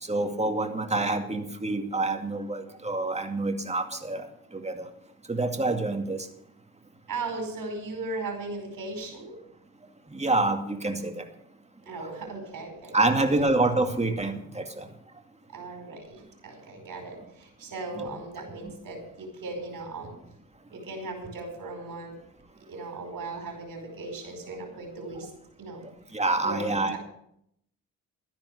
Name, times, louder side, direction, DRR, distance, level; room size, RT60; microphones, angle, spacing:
voice 1, 0.0-4.9 5.3-6.3 10.1-11.2 11.9-12.2 12.9-14.9 18.0-18.1 18.6-18.7 26.1-27.0, right 2 dB, 20° right, 5 dB, 2.3 m, -27 dB
voice 2, 7.1-9.4 11.9-13.5 15.5-20.2 20.7-22.2 22.7-25.3 25.6-25.8 26.4-27.0, right 3 dB, 70° right, 4 dB, 5.0 m, -37 dB
12.5 x 10.5 x 6.6 m, 0.73 s
cardioid pair, 65°, 34 cm